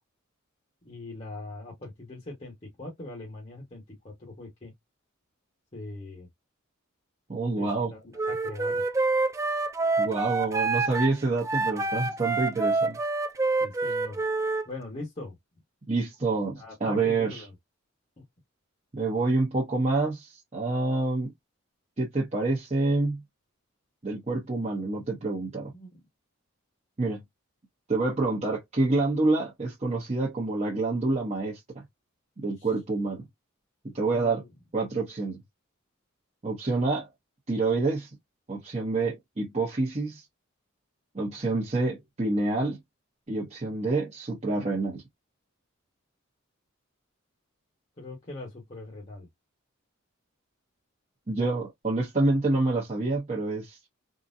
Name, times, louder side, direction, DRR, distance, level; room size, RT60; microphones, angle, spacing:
voice 1, 0.8-4.7 5.7-6.3 7.6-8.8 13.6-14.2 14.6-15.3 16.6-17.5 25.7-25.9 32.6-32.7 34.1-34.5 48.0-49.3, left 2 dB, 35° left, 1.2 m, -41 dB
voice 2, 7.3-7.9 10.0-13.0 15.9-17.4 18.9-21.3 22.0-23.2 24.0-25.7 27.0-27.2 27.9-31.8 32.4-33.3 33.9-34.4 34.7-35.4 36.4-37.1 37.5-38.1 38.5-40.2 41.1-42.8 43.3-45.0 51.3-53.8, right 3 dB, 30° right, 0.9 m, -27 dB
Wind instrument woodwind instrument, 8.2-14.7, right 3 dB, 15° right, 0.3 m, -27 dB
3.8 x 2.2 x 2.6 m
head